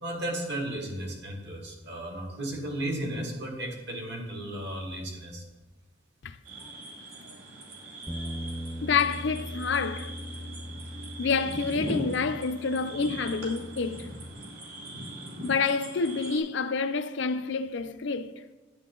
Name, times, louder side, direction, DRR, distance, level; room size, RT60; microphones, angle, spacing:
voice 1, 0.0-5.4, right 1 dB, 60° right, 2.0 m, -34 dB
sound 1, 6.4-16.4, right 1 dB, 85° right, 3.1 m, -40 dB
Bass guitar, 8.1-14.3, equal, ahead, 0.6 m, -40 dB
voice 2, 8.8-10.1 11.2-14.1 15.4-18.3, left 5 dB, 65° left, 0.5 m, -28 dB
10.0 x 9.4 x 3.8 m
head